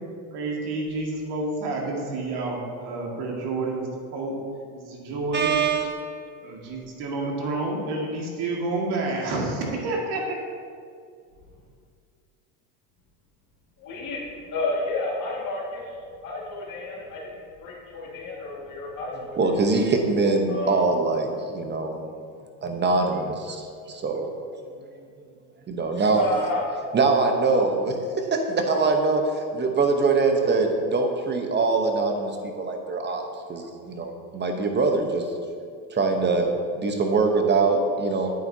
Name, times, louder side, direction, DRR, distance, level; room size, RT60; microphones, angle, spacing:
voice 1, 0.3-4.4 4.7-5.5 6.4-10.4, right 2 dB, 55° right, -1 dB, 2.0 m, -29 dB
voice 2, 5.3-6.1 19.2-22.0 22.6-24.3 25.7-26.3 26.9-32.3 32.6-33.2 33.5-35.2 35.9-36.5 36.7-38.3, right 3 dB, 25° right, 4 dB, 0.9 m, -23 dB
voice 3, 13.8-14.2 14.5-15.8 16.2-17.2 17.6-19.4 20.5-20.8 26.1-26.6, left 2 dB, 40° left, -6 dB, 1.9 m, -30 dB
9.0 x 8.2 x 2.7 m, 2.2 s
supercardioid pair, 110°, 46 cm